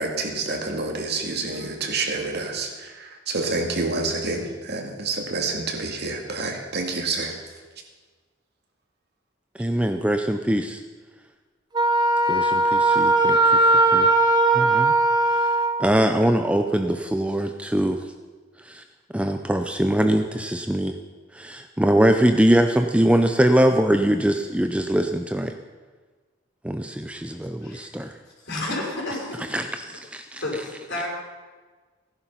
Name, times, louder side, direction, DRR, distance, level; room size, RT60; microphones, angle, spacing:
voice 1, 0.0-7.4, right 3 dB, 55° right, 2 dB, 2.1 m, -28 dB
voice 2, 9.6-10.8 12.3-13.6 13.9-14.1 14.5-14.9 15.3-15.5 15.8-18.0 18.6-18.8 19.1-21.0 21.3-25.5 26.6-28.1 29.5-30.4, right 1 dB, 5° right, 6 dB, 0.5 m, -22 dB
Wind instrument woodwind instrument, 11.7-15.9, right 2 dB, 20° right, 1.2 m, -19 dB
voice 3, 28.4-29.4 30.4-30.6 30.9-31.1, left 2 dB, 60° left, -2 dB, 5.6 m, -30 dB
16.0 x 11.5 x 5.7 m, 1.4 s
head